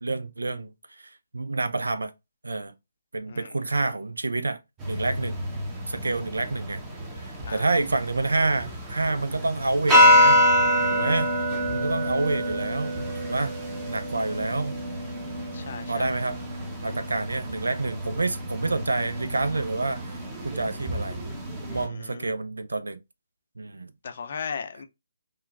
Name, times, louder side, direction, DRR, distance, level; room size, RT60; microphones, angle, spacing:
voice 1, 0.0-2.1 2.4-2.7 3.1-4.6 4.9-5.4 5.9-6.8 7.1-10.4 10.9-11.3 11.7-13.6 13.9-14.8 15.9-16.4 16.8-20.1 20.4-21.2 21.6-23.0 23.6-23.9, right 3 dB, 75° right, 0.3 m, -28 dB
voice 2, 3.3-3.8 7.4-7.7 15.5-16.2 21.7-22.3 24.0-24.8, left 6 dB, 50° left, 0.5 m, -37 dB
sound 1, 4.8-21.9, equal, 20° right, 0.8 m, -26 dB
3.7 x 2.2 x 2.3 m
figure-of-eight pair, 140°, 0 cm